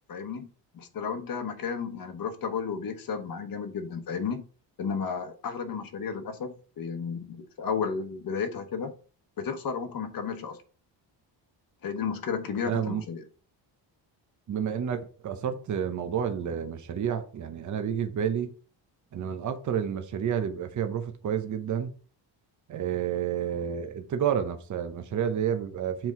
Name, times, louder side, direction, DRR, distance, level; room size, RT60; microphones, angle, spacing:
voice 1, 0.1-0.5 0.7-4.4 4.8-8.9 9.4-10.6 11.8-13.2, left 6 dB, 50° left, 7 dB, 1.1 m, -33 dB
voice 2, 12.6-13.0 14.5-18.5 19.1-21.9 22.7-26.1, right 8 dB, 40° right, 8 dB, 0.8 m, -30 dB
7.7 x 4.6 x 3.7 m, 0.39 s
cardioid pair, 175°, 45 cm